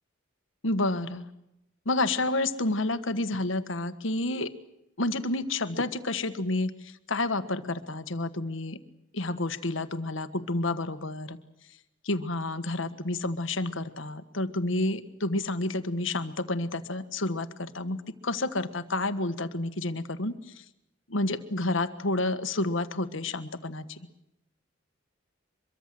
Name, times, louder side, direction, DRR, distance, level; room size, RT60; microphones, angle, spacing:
voice 1, 0.6-1.3 1.8-4.5 5.0-8.8 9.1-11.4 12.0-18.0 18.2-20.3 21.1-24.0, left 2 dB, 70° left, 11 dB, 1.5 m, -30 dB
24.5 x 23.0 x 7.7 m, 0.83 s
head